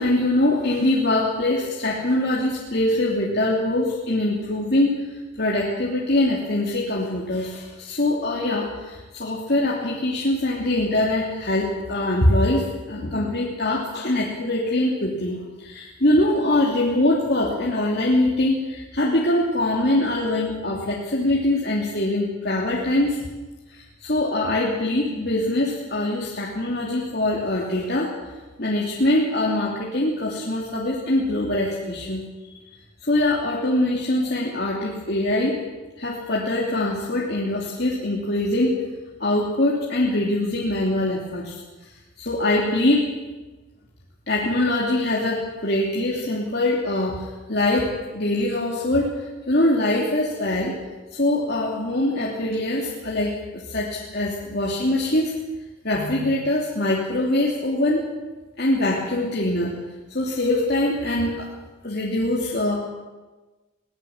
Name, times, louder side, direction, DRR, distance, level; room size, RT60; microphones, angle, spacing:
voice 1, 0.0-23.2 23.7-28.1 28.6-32.2 32.5-32.6 33.0-35.6 36.0-38.7 39.2-41.6 42.2-43.1 44.3-49.1 49.5-50.8 51.1-55.3 55.8-58.1 58.6-59.8 60.1-61.5 61.8-62.9, left 1 dB, 50° left, -4 dB, 3.0 m, -23 dB
22.5 x 17.0 x 7.3 m, 1.2 s
head